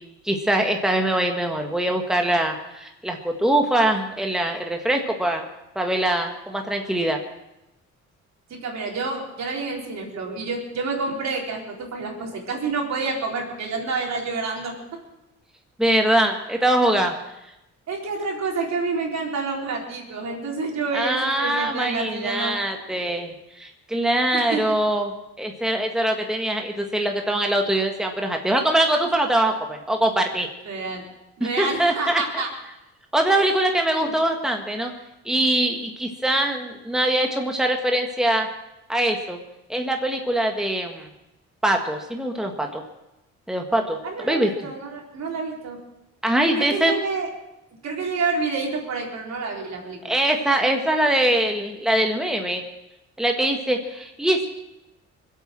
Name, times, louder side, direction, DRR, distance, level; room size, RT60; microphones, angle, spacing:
voice 1, 0.2-5.5 5.8-7.2 15.8-17.2 20.9-25.1 25.4-30.5 31.4-32.2 33.1-34.9 35.3-38.5 38.9-39.4 39.7-41.1 41.6-42.8 43.5-44.5 46.2-46.9 50.0-52.6 53.2-54.6, right 1 dB, ahead, 3 dB, 1.7 m, -23 dB
voice 2, 8.5-15.0 17.9-22.6 22.9-23.1 24.3-24.8 30.7-31.0 31.4-32.5 33.2-33.6 34.0-34.2 44.0-45.8 46.6-47.3 47.8-50.1, right 4 dB, 60° right, 0 dB, 4.0 m, -28 dB
22.0 x 8.4 x 7.7 m, 0.92 s
cardioid pair, 90°, 30 cm